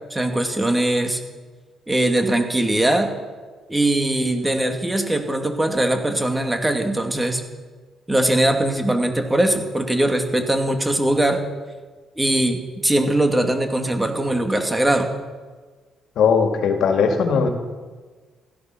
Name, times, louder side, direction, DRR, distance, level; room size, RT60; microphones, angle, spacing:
voice 1, 0.1-1.2 1.9-3.1 3.7-7.4 8.1-11.4 12.2-15.1, right 1 dB, 10° right, 4 dB, 2.4 m, -21 dB
voice 2, 16.2-17.5, left 6 dB, 75° left, 4 dB, 2.2 m, -18 dB
16.0 x 13.0 x 6.1 m, 1.4 s
cardioid pair, 90°, 0 cm